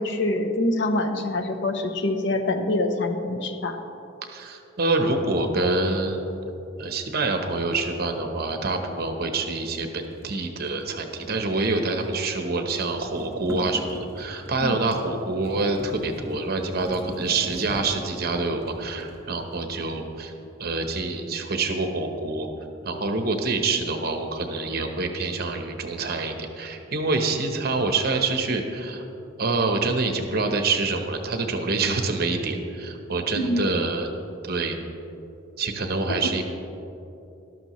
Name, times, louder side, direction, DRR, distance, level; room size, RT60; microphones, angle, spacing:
voice 1, 0.0-3.8 14.6-14.8 33.4-33.6, left 2 dB, 65° left, 7 dB, 0.8 m, -25 dB
voice 2, 4.3-6.4 6.8-20.3 20.6-22.5 22.8-29.0 29.4-34.1 34.4-34.8 35.6-36.4, right 3 dB, 50° right, 5 dB, 1.0 m, -26 dB
sound 1, 10.0-12.3 12.6-19.9, equal, 15° right, 1.5 m, -41 dB
12.5 x 12.5 x 3.1 m, 2.9 s
head